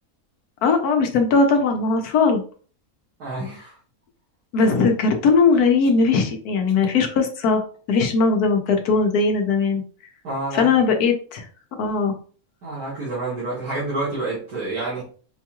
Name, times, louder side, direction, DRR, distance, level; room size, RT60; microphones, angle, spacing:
voice 1, 0.6-2.4 4.5-7.6 7.9-9.8 10.5-11.4 11.8-12.1, left 4 dB, 85° left, 4 dB, 1.2 m, -19 dB
voice 2, 3.2-3.7 10.2-10.7 12.6-15.0, right 2 dB, 80° right, -9 dB, 2.1 m, -28 dB
5.3 x 2.3 x 2.9 m, 0.41 s
omnidirectional pair, 1.6 m